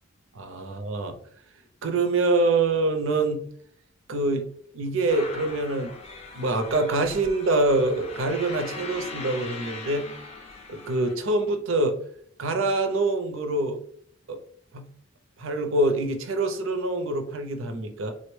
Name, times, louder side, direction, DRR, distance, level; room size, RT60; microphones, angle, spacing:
voice 1, 0.3-1.2 1.8-3.4 4.1-4.5 4.7-5.9 6.3-10.1 10.7-12.0 12.4-13.8 14.3-14.4 14.7-14.8 15.4-18.1, right 2 dB, 65° right, 6 dB, 0.5 m, -25 dB
sound 1, 5.1-11.2, left 3 dB, 30° left, 0.4 m, -40 dB
3.7 x 2.1 x 3.1 m, 0.62 s
head